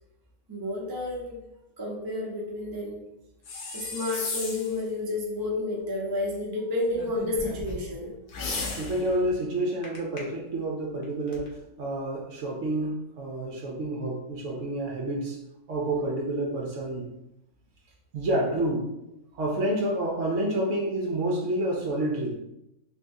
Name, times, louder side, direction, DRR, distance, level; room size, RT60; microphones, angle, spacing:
voice 1, 0.5-1.4 1.8-3.0 3.7-8.2 18.5-18.6, left 2 dB, 25° right, -3 dB, 0.4 m, -31 dB
sound 1, 3.4-4.8 8.3-9.2, left 3 dB, 80° left, 1.3 m, -34 dB
sound 2, 6.9-8.1 9.8-10.2 10.8-11.5, equal, 45° left, 0.9 m, -39 dB
voice 2, 8.8-15.4 15.7-17.1 18.1-18.9 19.3-22.4, right 1 dB, 60° right, -1 dB, 0.9 m, -29 dB
3.6 x 3.5 x 2.6 m, 0.88 s
omnidirectional pair, 1.7 m